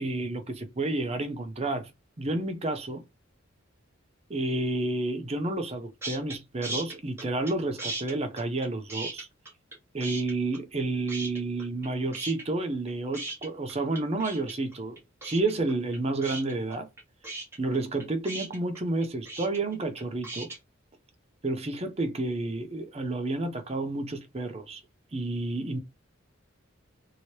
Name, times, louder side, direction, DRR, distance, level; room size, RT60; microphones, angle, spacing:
voice 1, 0.0-1.9 2.2-3.0 4.3-9.3 9.9-16.9 17.6-20.5 21.4-24.8 25.1-25.8, right 2 dB, 30° right, 0.5 m, -30 dB
sound 1, 6.0-6.4 6.6-7.5 7.8-9.8 10.0-10.8 11.1-11.9 12.1-20.6, right 2 dB, 10° right, 1.1 m, -37 dB
3.0 x 2.8 x 3.0 m
head